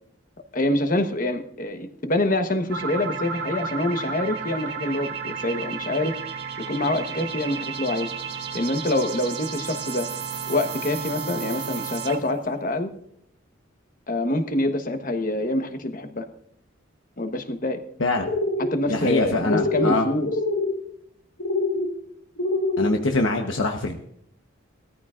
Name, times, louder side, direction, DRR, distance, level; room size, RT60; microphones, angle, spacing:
voice 1, 0.5-6.1 6.7-8.1 8.5-10.1 10.5-12.9 14.1-16.3 17.2-17.8 18.6-20.3, left 1 dB, 40° left, 7 dB, 1.2 m, -26 dB
sound 1, 2.7-12.4, right 6 dB, 55° right, 1.4 m, -33 dB
sound 2, 18.2-18.7 19.5-20.0 20.2-20.7 21.4-21.9 22.4-22.9, left 2 dB, 70° left, 1.6 m, -24 dB
voice 2, 18.9-20.1 22.8-24.0, left 2 dB, 85° left, 3 dB, 1.1 m, -23 dB
19.0 x 14.0 x 2.5 m, 0.70 s
head